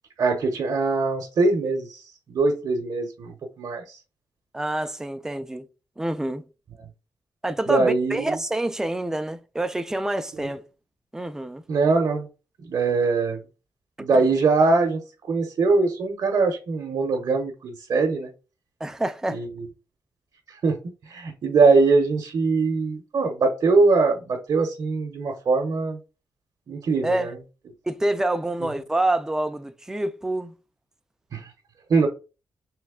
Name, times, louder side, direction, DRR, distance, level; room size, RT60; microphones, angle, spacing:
voice 1, 0.2-2.0 2.3-4.0 7.7-8.4 11.7-12.3 12.6-13.4 14.0-15.0 15.3-18.3 19.3-19.7 20.6-20.8 21.0-26.0 26.7-27.3 31.3-31.5 31.9-32.1, right 3 dB, 55° right, 0.6 m, -22 dB
voice 2, 4.5-5.7 6.0-6.4 7.4-10.7 11.1-11.6 14.0-14.3 18.8-19.4 27.0-27.3 27.9-30.5, right 1 dB, 5° right, 0.3 m, -27 dB
3.2 x 3.0 x 3.5 m
wide cardioid pair, 140°, 8 cm